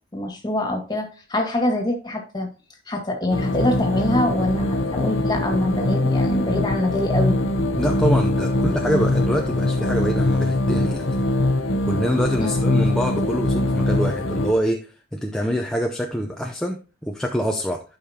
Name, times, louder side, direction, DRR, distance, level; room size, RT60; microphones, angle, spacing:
voice 1, 0.1-2.5 2.9-7.4 12.4-12.7, left 1 dB, 20° left, 2 dB, 2.0 m, -24 dB
sound 1, 3.3-14.5, left 1 dB, 70° left, 0.9 m, -22 dB
voice 2, 7.7-11.6 11.9-17.8, equal, 5° left, 1 dB, 0.6 m, -25 dB
12.0 x 5.6 x 2.9 m, 0.34 s
head